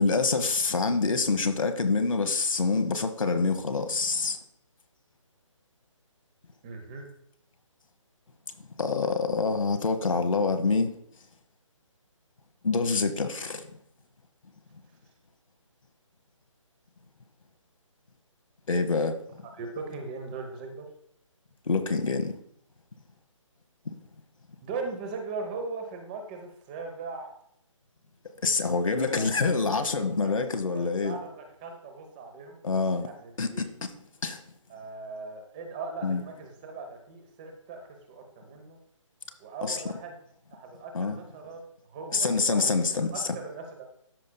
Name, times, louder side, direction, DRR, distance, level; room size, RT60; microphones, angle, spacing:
voice 1, 0.0-4.4 8.8-10.9 12.6-13.7 18.7-19.2 21.7-22.3 28.4-31.2 32.6-33.1 33.4-33.9 34.2-34.4 36.0-36.2 39.6-39.8 40.9-41.2 42.1-43.3, left 4 dB, 85° left, 1.0 m, -26 dB
voice 2, 6.6-7.1 19.6-20.9 24.6-27.3 28.9-30.3 30.7-32.6 33.0-33.6 34.7-38.8 39.4-40.1 40.5-41.6 41.9-43.9, right 4 dB, 15° right, 0.8 m, -39 dB
13.5 x 5.4 x 2.2 m
hypercardioid pair, 165°, 17 cm